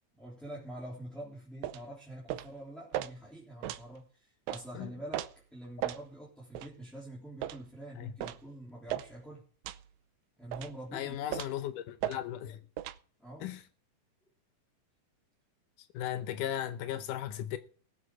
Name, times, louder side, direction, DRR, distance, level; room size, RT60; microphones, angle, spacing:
voice 1, 0.1-9.4 10.4-11.4 13.2-13.5, right 1 dB, ahead, 3.2 m, -46 dB
sound 1, 1.6-1.8 2.3-2.5 2.9-3.1 3.6-3.8 4.5-4.6 5.1-5.3 5.8-6.0 6.5-6.7 7.4-7.6 8.2-8.4 8.9-9.1 9.6-9.8 10.5-10.8 11.3-11.6 12.0-12.2 12.8-13.0, right 13 dB, 75° right, 1.9 m, -36 dB
voice 2, 10.9-12.6 13.4-13.6 15.8-17.6, left 11 dB, 85° left, 2.4 m, -36 dB
20.0 x 7.7 x 4.8 m
omnidirectional pair, 3.6 m